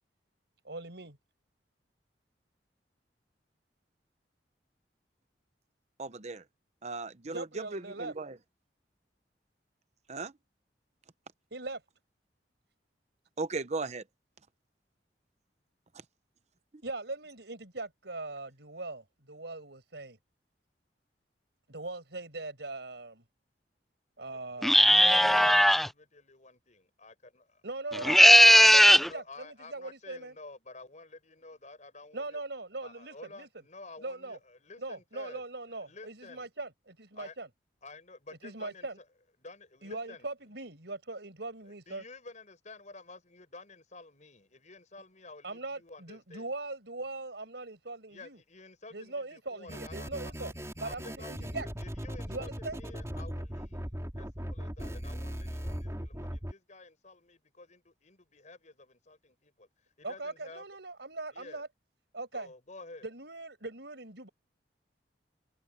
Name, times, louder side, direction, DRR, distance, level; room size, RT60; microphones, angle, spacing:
voice 1, 0.6-1.2 7.3-8.1 11.5-11.8 16.8-20.2 21.7-23.2 24.2-25.6 27.6-30.3 32.1-33.5 34.0-34.4 34.8-37.5 38.4-39.0 39.8-42.0 45.4-48.4 48.9-50.5 50.8-51.7 52.3-52.8 60.0-61.7 62.1-62.5 63.0-64.3, right 2 dB, 75° right, 5.6 m, -40 dB
voice 2, 6.0-6.4 6.8-8.4 10.1-10.3 13.4-14.0 15.9-16.0, right 3 dB, 40° right, 0.9 m, -37 dB
voice 3, 24.3-27.6 27.9-28.7 29.0-32.4 32.8-35.4 35.7-36.5 37.2-37.4 37.8-38.9 39.4-40.3 41.6-46.5 48.1-50.3 50.8-59.7 60.0-60.7 61.3-61.6 62.3-63.1, left 3 dB, 45° left, 5.5 m, -51 dB
sound 1, 24.6-25.9 27.9-29.1, equal, ahead, 0.3 m, -18 dB
sound 2, 49.7-56.5, equal, 15° right, 3.0 m, -39 dB
head